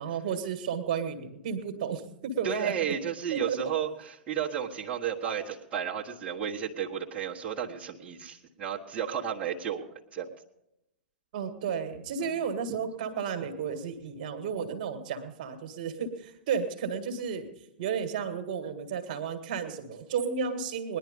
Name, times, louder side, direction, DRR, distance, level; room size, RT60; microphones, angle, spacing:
voice 1, 0.0-2.7 3.3-3.6 11.3-17.5 17.8-21.0, right 6 dB, 50° right, 7 dB, 1.8 m, -33 dB
voice 2, 2.4-9.9 10.1-10.3, right 8 dB, 25° right, -4 dB, 1.4 m, -33 dB
19.5 x 11.0 x 5.3 m, 0.85 s
figure-of-eight pair, 105°, 5 cm